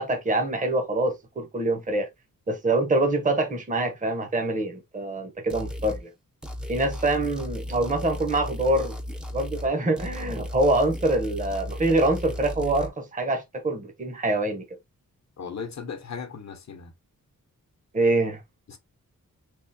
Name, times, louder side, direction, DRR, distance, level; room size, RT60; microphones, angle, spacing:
voice 1, 0.0-2.1 2.5-6.1 6.7-9.0 9.3-14.6 17.9-18.4, right 2 dB, 25° right, 0.9 m, -25 dB
sound 1, 5.5-6.0 6.4-9.7 10.0-12.9, equal, 5° right, 0.6 m, -35 dB
voice 2, 15.4-16.9 18.7-18.8, left 6 dB, 55° left, 1.0 m, -37 dB
3.7 x 3.0 x 2.7 m
wide cardioid pair, 105°, 34 cm